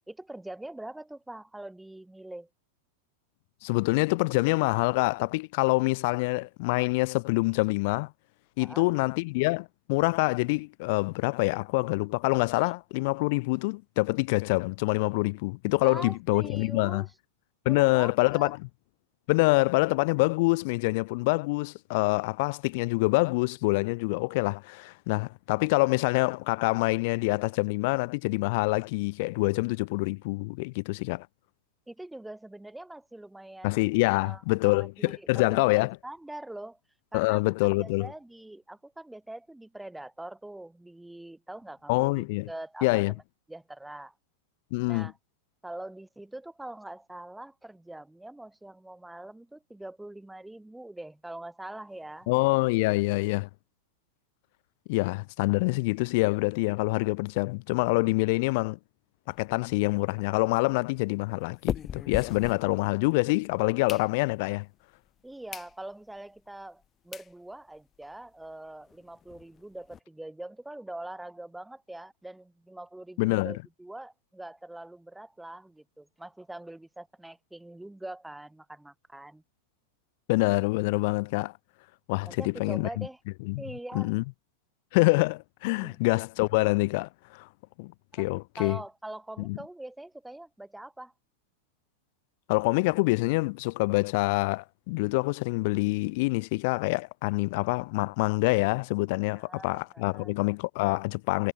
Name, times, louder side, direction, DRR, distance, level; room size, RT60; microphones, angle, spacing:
voice 1, 0.1-2.5 8.6-8.9 15.8-17.1 17.6-18.5 31.9-36.8 37.1-37.4 37.8-43.0 43.5-44.1 44.9-45.2 45.6-52.3 65.2-79.4 82.3-83.2 83.6-84.1 85.8-86.0 88.1-88.3 88.6-91.1 99.3-100.3, right 1 dB, 5° right, 3.4 m, -43 dB
voice 2, 3.6-8.1 8.6-17.0 17.6-18.7 19.3-31.3 33.6-36.0 37.1-38.1 41.9-42.5 42.8-43.1 44.7-45.1 52.3-53.5 54.9-58.8 59.3-64.7 73.2-73.5 80.3-81.5 82.1-83.1 83.5-83.6 83.9-84.2 84.9-87.5 87.8-88.8 89.4-89.6 92.5-101.5, left 25 dB, 50° left, 0.6 m, -26 dB
sound 1, 59.3-63.2 63.6-64.6 65.1-65.2 65.5-65.7 66.2-66.3 66.8-66.9 67.1-67.3 67.8-67.9 68.0-68.2 68.4-68.5 68.8-70.0, left 8 dB, 25° left, 1.2 m, -40 dB
figure-of-eight pair, 90°, 0 cm